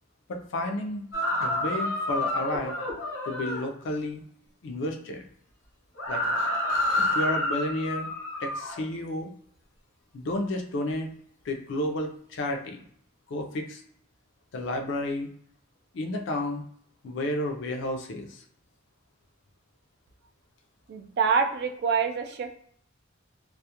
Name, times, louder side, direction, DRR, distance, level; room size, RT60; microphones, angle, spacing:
voice 1, 0.3-1.1 1.4-2.7 3.3-4.2 4.6-5.2 6.1-6.2 7.0-8.1 8.4-9.3 10.1-11.1 11.4-12.8 13.3-13.8 14.5-15.3 15.9-16.6 17.0-18.4, left 1 dB, 65° left, 3 dB, 0.4 m, -31 dB
sound 1, 1.1-3.6 6.0-8.8, left 1 dB, 90° left, 0.9 m, -28 dB
voice 2, 20.9-22.5, right 5 dB, 55° right, 5 dB, 0.3 m, -26 dB
2.3 x 2.0 x 2.8 m, 0.63 s
head